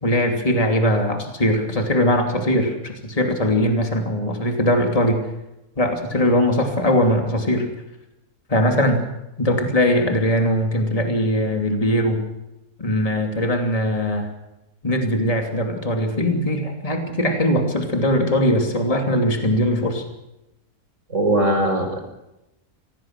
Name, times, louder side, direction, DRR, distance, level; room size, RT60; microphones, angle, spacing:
voice 1, 0.0-5.3 5.8-7.7 8.5-9.0 9.4-12.2 12.8-14.3 14.8-20.0, equal, 20° left, 3 dB, 2.8 m, -20 dB
voice 2, 21.1-22.0, right 1 dB, 50° right, 3 dB, 5.8 m, -20 dB
25.0 x 18.0 x 6.2 m, 0.93 s
omnidirectional pair, 1.7 m